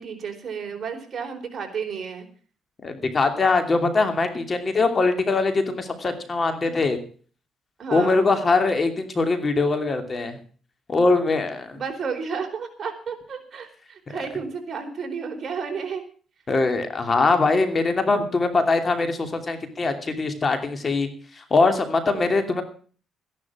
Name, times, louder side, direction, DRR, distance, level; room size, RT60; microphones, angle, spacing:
voice 1, 0.0-2.3 6.6-6.8 7.8-8.3 11.7-16.0 22.1-22.4, right 6 dB, 45° right, 3 dB, 4.2 m, -32 dB
voice 2, 2.8-7.0 7.9-10.4 10.9-11.8 16.5-22.6, left 3 dB, 35° left, 7 dB, 2.8 m, -22 dB
14.0 x 11.0 x 6.0 m, 0.42 s
cardioid pair, 90°, 0 cm